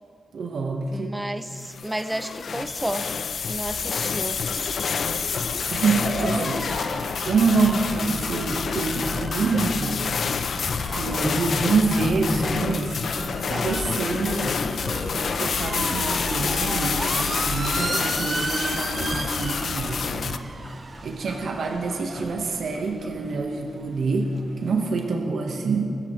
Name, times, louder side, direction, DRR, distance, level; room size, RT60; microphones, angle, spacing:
voice 1, 0.3-1.1 5.2-5.3 5.7-6.6 7.2-10.0 11.0-13.0 13.5-14.6 15.1-20.4 21.0-26.0, right 4 dB, 70° right, 2 dB, 1.2 m, -26 dB
voice 2, 0.9-3.1 3.5-4.8 11.0-11.5, right 1 dB, 10° right, 11 dB, 0.5 m, -32 dB
sound 1, 1.6-20.4, left 6 dB, 60° left, 0.5 m, -28 dB
sound 2, 5.6-25.1, right 3 dB, 40° right, 0.8 m, -37 dB
sound 3, 7.5-8.2 8.5-8.7 9.0-10.0 10.3-14.5 14.8-15.1 15.7-16.4 16.7-16.9 17.2-18.3 18.6-23.2 23.5-23.7, left 1 dB, 10° left, 2.0 m, -35 dB
24.0 x 14.0 x 3.1 m, 2.5 s
wide cardioid pair, 120°, 0 cm